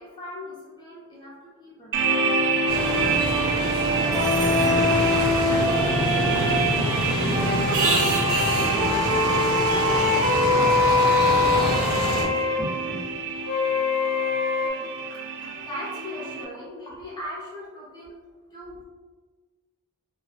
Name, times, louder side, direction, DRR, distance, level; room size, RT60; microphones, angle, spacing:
voice 1, 0.0-1.9 5.1-5.7 6.6-6.9 7.3-7.6 11.3-11.4 12.6-13.0 14.6-18.2 18.5-18.8, left 1 dB, 20° left, -6 dB, 0.9 m, -39 dB
sound 1, 1.9-16.4, right 4 dB, 55° right, 0.3 m, -28 dB
sound 2, 2.0-6.6 7.3-12.6 13.5-14.7, left 3 dB, 80° left, 1.1 m, -24 dB
sound 3, 2.7-12.2, right 1 dB, 85° right, 0.9 m, -26 dB
voice 2, 2.8-5.9 6.3-7.0 7.4-12.5, equal, 10° right, -9 dB, 0.6 m, -38 dB
2.9 x 2.2 x 3.2 m, 1.4 s
head